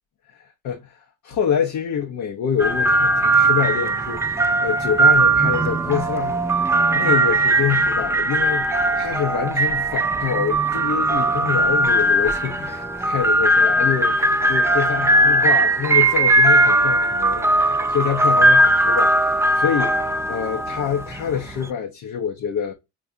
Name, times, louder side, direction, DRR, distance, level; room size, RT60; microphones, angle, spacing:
voice 1, 0.6-6.7 6.9-22.7, left 8 dB, 70° left, 0.7 m, -26 dB
sound 1, 2.6-21.7, right 2 dB, 10° right, 0.3 m, -19 dB
4.7 x 2.3 x 2.4 m
cardioid pair, 90°, 30 cm